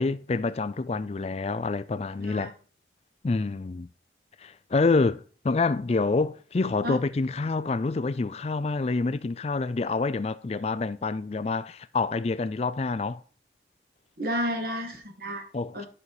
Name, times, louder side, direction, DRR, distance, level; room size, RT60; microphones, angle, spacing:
voice 1, 0.0-2.5 3.2-3.9 4.4-13.2 15.5-15.9, left 3 dB, 35° left, 0.4 m, -27 dB
voice 2, 14.2-15.5 15.7-15.9, equal, 55° right, 2.2 m, -31 dB
10.5 x 5.6 x 4.9 m
head